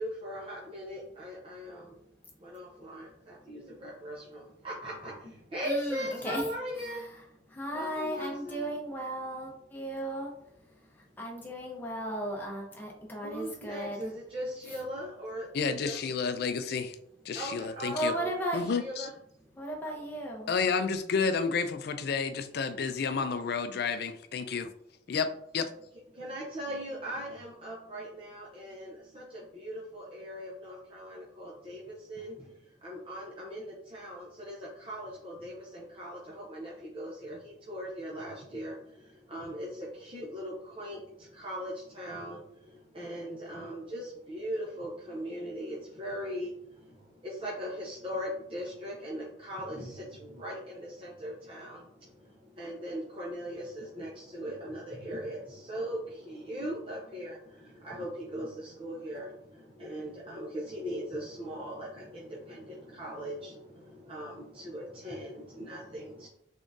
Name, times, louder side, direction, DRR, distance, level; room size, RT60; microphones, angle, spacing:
voice 1, 0.0-1.9 2.4-7.1 7.7-8.7 13.2-15.5 15.8-16.0 17.3-18.3 18.8-19.1 26.1-66.3, equal, 30° right, -5 dB, 0.6 m, -39 dB
voice 2, 5.6-6.5 6.8-10.3 10.9-14.1 14.7-14.8 17.9-18.6 19.5-20.5, right 1 dB, 10° left, -2 dB, 0.7 m, -36 dB
voice 3, 15.5-17.0 17.3-18.1 18.5-19.1 20.5-24.7 25.1-25.7, left 5 dB, 55° left, 10 dB, 0.4 m, -30 dB
3.6 x 3.5 x 2.6 m, 0.73 s
head